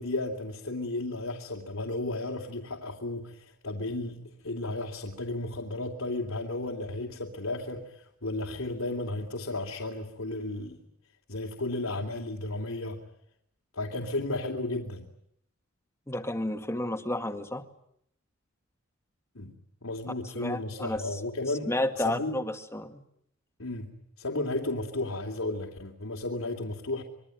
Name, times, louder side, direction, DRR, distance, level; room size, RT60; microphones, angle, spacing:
voice 1, 0.0-10.8 11.3-13.0 13.7-15.1 19.3-19.5 19.8-22.3 23.6-23.9 24.2-27.0, left 2 dB, 90° left, 1 dB, 2.9 m, -34 dB
voice 2, 16.1-17.6 20.2-21.2 21.7-23.0, left 1 dB, 15° left, 7 dB, 2.0 m, -31 dB
26.5 x 22.5 x 9.3 m, 0.74 s
head